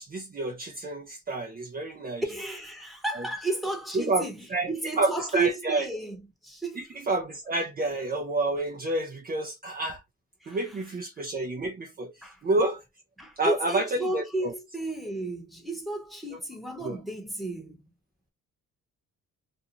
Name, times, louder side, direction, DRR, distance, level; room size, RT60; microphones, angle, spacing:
voice 1, 0.0-2.2 3.9-4.2 4.5-4.7 5.0-5.8 6.8-10.0 10.5-12.1 12.4-12.8 13.4-13.8 14.1-14.5 16.8-17.0, right 2 dB, 30° right, 0.5 m, -29 dB
voice 2, 2.3-7.0 10.4-10.8 12.2-12.4 13.2-17.8, right 2 dB, ahead, 1.0 m, -33 dB
2.6 x 2.2 x 2.9 m
cardioid pair, 90°, 30 cm